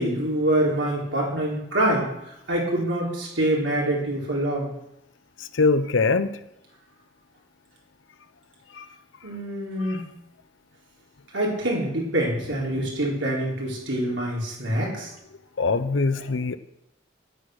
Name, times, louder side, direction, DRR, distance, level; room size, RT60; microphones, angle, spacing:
voice 1, 0.0-2.1 2.5-4.7 9.2-10.0 11.3-15.1, right 1 dB, 75° right, -2 dB, 4.0 m, -25 dB
voice 2, 5.4-6.4 8.7-8.9 9.8-10.0 12.7-12.9 15.6-16.6, left 4 dB, 80° left, 11 dB, 0.7 m, -23 dB
10.5 x 9.2 x 6.4 m, 0.83 s
head